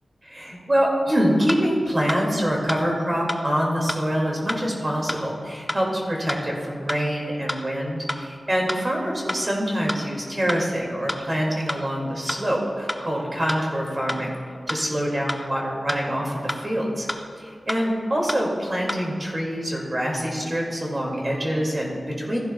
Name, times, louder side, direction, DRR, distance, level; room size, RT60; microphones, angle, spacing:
voice 1, 0.2-14.3 14.7-17.1 17.4-22.4, equal, 35° right, -2 dB, 2.2 m, -25 dB
sound 1, 1.5-1.6 2.1-2.2 2.7-2.8 3.3-3.4 3.9-4.0 4.5-4.6 5.1-5.2 5.7-5.8 6.3-6.4 6.9-7.0 7.5-7.6 8.1-8.2 8.7-8.8 9.3-9.4 9.9-10.0 10.5-10.6 11.1-11.2 11.7-11.8 12.3-12.4 12.9-13.0 13.5-13.6 14.1-14.2 14.7-14.8 15.3-15.4 15.9-16.0 16.5-16.6 17.1-17.2 17.7-17.8 18.3-18.4 18.9-19.0, left 1 dB, 20° left, 0.7 m, -28 dB
15.0 x 11.5 x 2.3 m, 2.2 s
wide cardioid pair, 90°, 0 cm